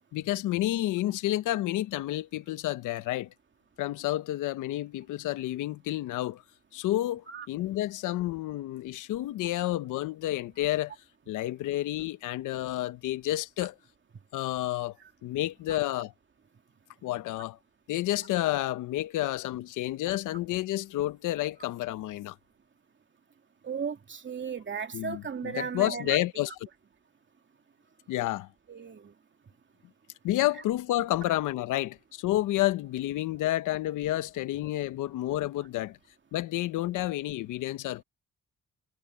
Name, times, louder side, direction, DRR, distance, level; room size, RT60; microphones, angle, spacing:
voice 1, 0.1-3.3 3.8-6.4 6.7-10.9 11.3-13.7 14.3-15.0 15.2-16.1 17.0-17.6 17.9-22.4 24.9-26.5 28.1-28.5 30.2-36.0 36.3-38.0, left 15 dB, 85° left, 1.0 m, -30 dB
voice 2, 23.6-26.2 28.2-28.3 28.7-29.1, right 6 dB, 40° right, 2.7 m, -36 dB
cardioid pair, 90°, 30 cm